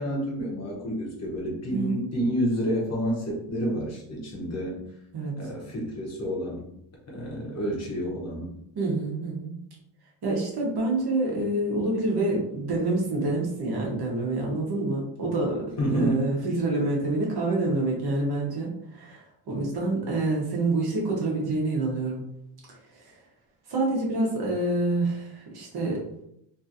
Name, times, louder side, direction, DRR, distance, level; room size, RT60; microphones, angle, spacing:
voice 1, 0.0-4.8 5.4-6.7 7.1-8.5 15.8-16.2, equal, 35° left, -3 dB, 0.9 m, -29 dB
voice 2, 1.7-2.0 5.1-5.3 8.7-9.5 10.2-22.2 22.9-23.2 23.7-26.0, right 2 dB, 50° right, -3 dB, 1.0 m, -27 dB
2.9 x 2.7 x 2.5 m, 0.75 s
cardioid pair, 160°, 49 cm